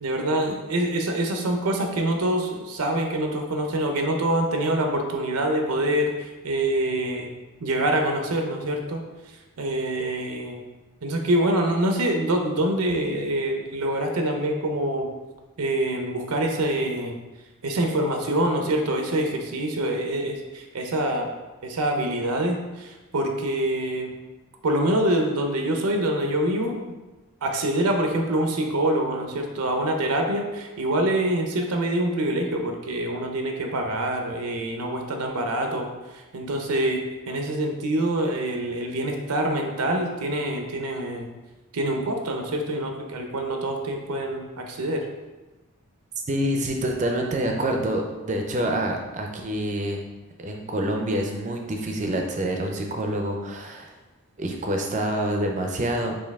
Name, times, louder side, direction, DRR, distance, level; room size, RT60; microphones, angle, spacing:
voice 1, 0.0-7.3 7.6-9.0 9.6-10.6 11.0-15.1 15.6-17.1 17.6-21.3 21.6-24.1 24.6-26.9 27.4-35.9 36.3-41.3 41.7-45.0, right 1 dB, 85° right, 3 dB, 0.6 m, -25 dB
voice 2, 46.3-50.0 50.4-53.9 54.4-56.2, right 1 dB, 35° right, 2 dB, 0.4 m, -27 dB
4.4 x 2.7 x 3.5 m, 1.1 s
head